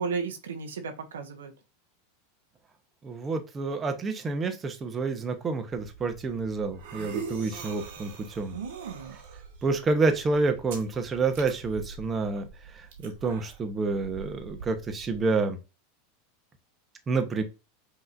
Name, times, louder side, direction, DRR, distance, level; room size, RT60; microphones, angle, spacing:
voice 1, 0.0-1.5 8.5-9.2, right 5 dB, 90° right, 6 dB, 1.0 m, -34 dB
voice 2, 3.0-8.5 9.6-12.5 12.7-15.6 17.1-17.4, right 3 dB, 25° right, 6 dB, 0.9 m, -28 dB
sound 1, 5.7-15.2, right 6 dB, 70° right, 1.3 m, -43 dB
5.6 x 3.0 x 2.5 m, 0.27 s
hypercardioid pair, 110°, 0 cm